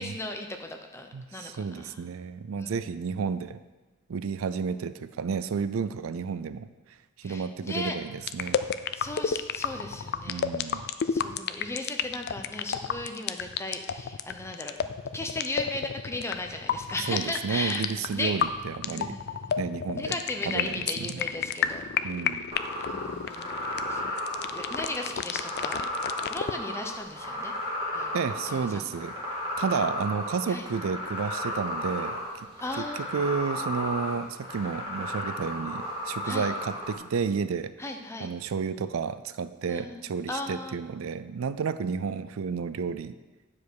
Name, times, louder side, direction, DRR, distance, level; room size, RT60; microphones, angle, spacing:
voice 1, 0.0-2.0 2.6-2.7 7.2-7.9 8.9-18.5 18.9-19.5 19.9-21.9 22.9-23.5 23.9-24.1 24.5-25.9 26.3-27.5 27.9-28.1 28.5-28.9 30.5-30.7 32.6-33.0 36.2-36.5 37.8-38.3 39.7-40.0 40.3-40.8, left 2 dB, 15° left, 4 dB, 0.7 m, -36 dB
voice 2, 1.1-3.6 4.1-6.7 7.2-8.6 10.3-10.9 17.1-19.2 19.6-20.2 20.5-21.2 22.0-22.5 28.1-29.1 29.6-32.2 32.8-32.9 33.1-37.7 38.2-43.2, right 5 dB, 70° right, 13 dB, 0.4 m, -31 dB
sound 1, 8.2-26.6, left 7 dB, 50° left, 0.4 m, -31 dB
sound 2, 22.5-37.0, left 1 dB, 25° right, 2.6 m, -34 dB
9.2 x 5.0 x 6.3 m, 1.2 s
head